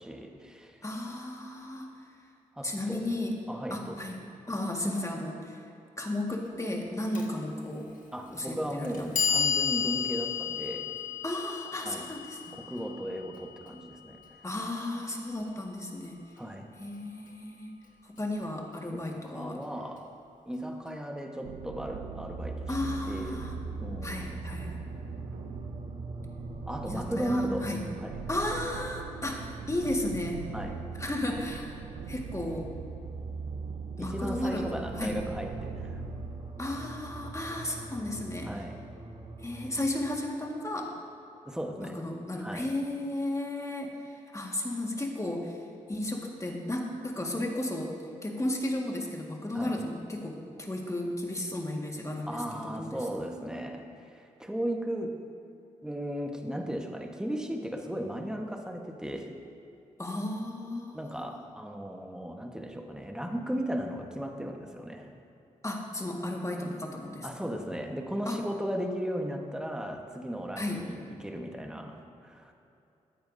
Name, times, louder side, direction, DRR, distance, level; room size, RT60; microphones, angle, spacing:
voice 1, 0.0-0.8 2.6-3.1 3.5-4.0 8.1-10.9 11.8-12.1 12.5-14.2 16.4-16.7 18.9-20.1 20.5-22.7 23.1-23.4 23.8-24.3 26.7-27.7 28.0-28.2 30.5-30.8 34.0-36.0 38.5-38.8 41.4-42.0 42.4-42.7 49.5-49.7 52.3-55.2 55.8-59.3 60.9-65.1 67.2-72.5, equal, 5° right, 3 dB, 1.2 m, -36 dB
voice 2, 0.8-1.9 2.6-3.4 3.7-4.2 4.5-5.6 6.0-7.9 8.3-9.2 11.2-12.5 14.4-16.2 16.8-17.8 18.0-19.6 22.7-23.5 24.0-24.7 26.9-27.8 28.3-30.4 31.0-31.8 32.1-32.7 34.0-35.2 36.6-38.5 39.4-41.0 41.8-45.6 45.9-47.9 48.2-53.0 60.0-61.3 65.6-67.5 68.2-68.4 70.6-70.8, left 1 dB, 20° left, 1 dB, 1.7 m, -34 dB
Clock, 7.1-7.3 8.2-8.3 8.8-14.9, left 7 dB, 65° left, 1.4 m, -33 dB
sound 1, 21.4-36.4, right 7 dB, 80° right, 0.4 m, -43 dB
sound 2, 22.3-40.2, right 3 dB, 35° right, 1.3 m, -42 dB
14.0 x 8.6 x 2.7 m, 2.8 s
supercardioid pair, 45°, 15 cm